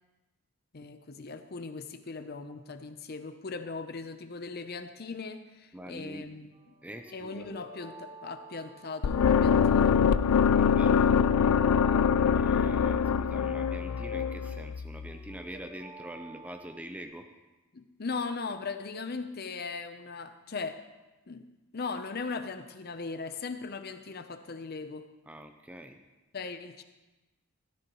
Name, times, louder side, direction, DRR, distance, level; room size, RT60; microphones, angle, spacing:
voice 1, 0.7-6.5 7.1-10.0 17.7-20.8 21.3-21.5 21.7-25.1 26.3-26.8, left 4 dB, 45° left, 9 dB, 0.6 m, -38 dB
voice 2, 5.7-6.3 6.8-7.5 10.5-11.1 11.9-17.3 25.3-26.0, right 1 dB, 5° right, 6 dB, 0.5 m, -44 dB
sound 1, 6.5-16.8, right 2 dB, 30° right, 2.5 m, -52 dB
sound 2, 9.0-15.1, left 7 dB, 80° left, 0.4 m, -24 dB
13.5 x 13.0 x 3.1 m, 1.1 s
head